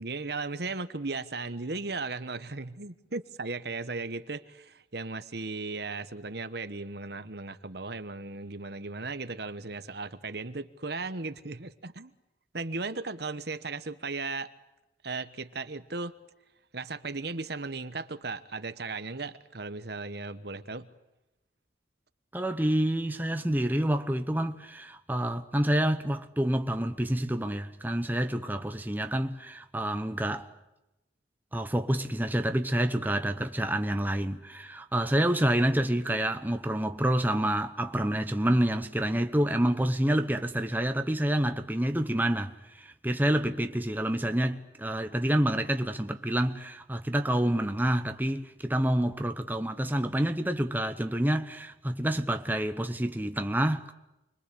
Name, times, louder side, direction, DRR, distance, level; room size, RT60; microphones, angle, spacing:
voice 1, 0.0-12.1 12.5-14.5 15.0-16.2 16.7-20.9, right 3 dB, 55° right, 1.2 m, -36 dB
voice 2, 22.3-30.5 31.5-53.9, right 1 dB, 10° right, 1.0 m, -28 dB
29.5 x 23.0 x 8.5 m
head